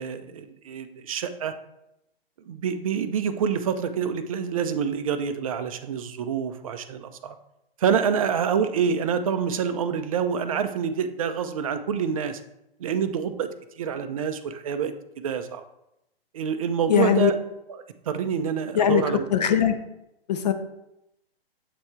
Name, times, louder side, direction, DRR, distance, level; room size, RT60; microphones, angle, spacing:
voice 1, 0.0-1.5 2.5-7.3 7.8-12.4 12.8-13.5 13.8-15.6 16.3-17.4 17.7-17.8 18.1-19.3, right 7 dB, 35° right, 10 dB, 0.5 m, -27 dB
voice 2, 16.9-17.3 18.7-19.8 20.3-20.5, left 9 dB, 45° left, 7 dB, 0.6 m, -21 dB
7.6 x 3.2 x 4.3 m, 0.86 s
figure-of-eight pair, 120°, 30 cm